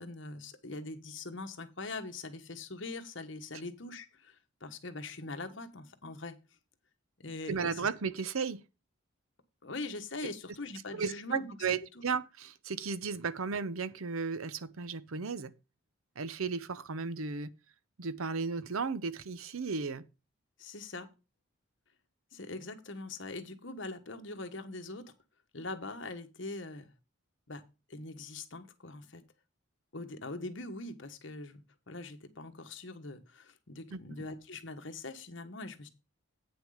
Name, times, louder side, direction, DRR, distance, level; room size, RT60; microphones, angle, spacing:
voice 1, 0.0-6.4 7.2-7.9 9.6-11.8 20.6-21.1 22.3-25.0 25.5-26.9 27.5-27.6 27.9-29.2 29.9-35.9, left 2 dB, 60° left, 1.4 m, -42 dB
voice 2, 7.5-8.6 10.2-10.3 10.9-15.5 16.2-17.5 18.0-20.0 33.9-34.0, right 5 dB, 80° right, 0.7 m, -35 dB
8.9 x 6.3 x 4.9 m
head